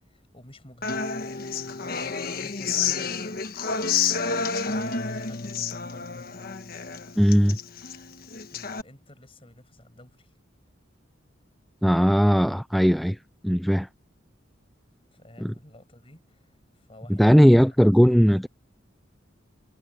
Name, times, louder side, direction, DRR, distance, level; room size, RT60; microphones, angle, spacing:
voice 1, 0.0-3.2 4.2-6.4 8.5-10.3 15.1-17.7, left 1 dB, 30° left, 6.4 m, -51 dB
Human voice / Acoustic guitar, 0.8-8.8, left 5 dB, 50° left, 1.3 m, -30 dB
voice 2, 7.2-7.6 11.8-13.2 13.4-13.9 15.4-15.5 17.1-18.5, equal, ahead, 0.4 m, -18 dB
head